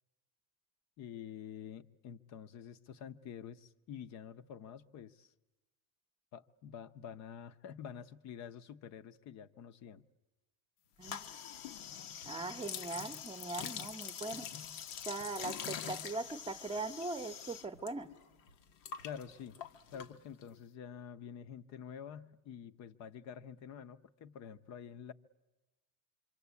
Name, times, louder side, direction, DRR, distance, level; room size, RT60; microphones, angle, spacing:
voice 1, 1.0-5.3 6.3-10.0 19.0-19.6 19.9-25.1, left 8 dB, 45° left, 0.9 m, -48 dB
Lavamanos agua, 11.0-17.9 18.2-20.6, left 8 dB, 85° left, 1.4 m, -44 dB
voice 2, 11.0-11.3 12.2-14.5 15.1-18.1, right 3 dB, 15° right, 0.9 m, -40 dB
26.5 x 24.5 x 8.3 m
cardioid pair, 155°, 39 cm